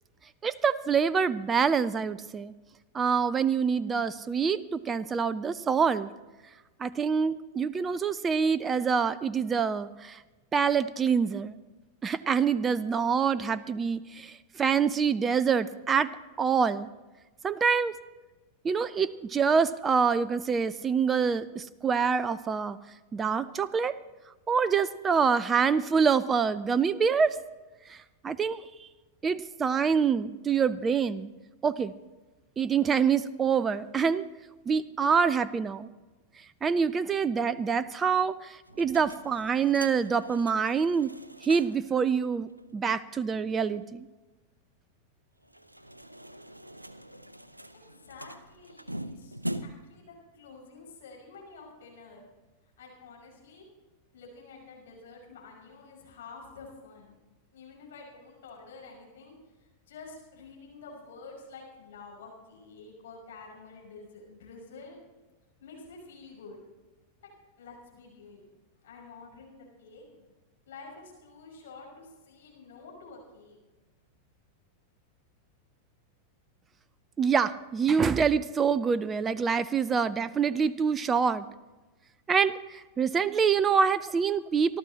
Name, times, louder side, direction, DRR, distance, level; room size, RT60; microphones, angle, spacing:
voice 1, 0.4-2.5 2.9-6.1 6.8-10.2 10.5-11.6 12.0-16.1 16.4-16.9 17.4-18.0 18.6-22.8 23.1-24.0 24.5-27.4 27.9-28.0 28.2-28.6 29.2-31.3 31.6-31.9 32.6-34.2 34.7-35.9 36.6-41.1 41.4-44.1 77.2-81.5 82.3-84.8, right 6 dB, 20° right, 16 dB, 0.5 m, -26 dB
sound 1, 38.7-41.9 42.2-42.3 42.6-42.7 45.4-50.0, equal, 85° right, 0.6 m, -42 dB
voice 2, 47.9-49.4 49.6-52.2 52.8-53.6 54.1-57.1 57.5-65.0 65.6-66.6 67.2-67.3 67.6-68.5 68.8-70.0 70.7-73.6, left 4 dB, 60° left, -2 dB, 6.0 m, -49 dB
26.5 x 12.5 x 2.9 m, 1.2 s
figure-of-eight pair, 90°, 0 cm